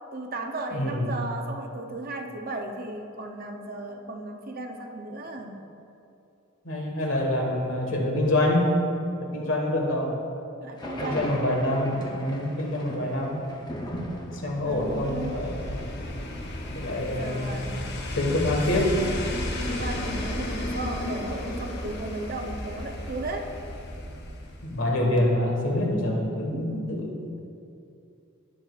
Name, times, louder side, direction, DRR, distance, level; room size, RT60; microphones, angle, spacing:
voice 1, 0.1-5.7 10.6-11.4 14.6-15.4 17.2-17.9 19.6-23.5 26.5-26.8, right 2 dB, 45° right, 3 dB, 0.7 m, -35 dB
voice 2, 0.7-1.1 6.6-8.7 9.2-10.1 11.0-13.5 14.4-15.7 16.7-17.7 18.1-19.0 24.6-27.4, left 1 dB, 65° left, 0 dB, 1.5 m, -26 dB
sound 1, 10.8-17.6, equal, 20° left, 0.7 m, -39 dB
sound 2, 14.5-24.9 25.2-25.3, left 1 dB, 50° left, 0.9 m, -34 dB
17.5 x 6.4 x 2.4 m, 2.6 s
head